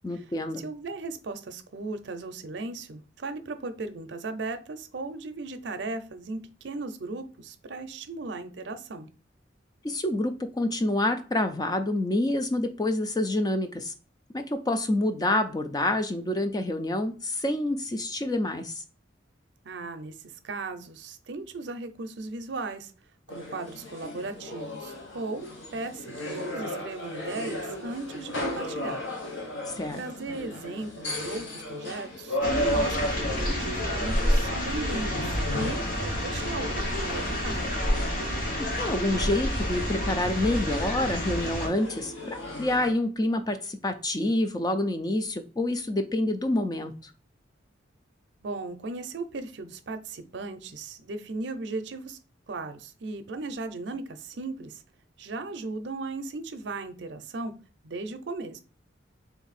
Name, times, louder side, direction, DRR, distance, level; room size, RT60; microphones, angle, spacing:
voice 1, 0.0-0.6 9.8-13.9 14.3-18.8 29.7-30.0 38.6-47.1, left 1 dB, 20° left, 8 dB, 0.3 m, -27 dB
voice 2, 0.6-9.1 19.6-22.9 23.3-25.5 25.7-29.0 29.9-37.8 48.4-52.2 52.5-54.8 55.2-57.5 57.8-58.6, right 3 dB, 70° right, 9 dB, 0.5 m, -37 dB
sound 1, 23.3-42.9, left 1 dB, 85° left, 1.0 m, -35 dB
sound 2, 32.4-41.7, equal, 45° left, 1.0 m, -29 dB
3.5 x 2.6 x 4.1 m, 0.39 s
head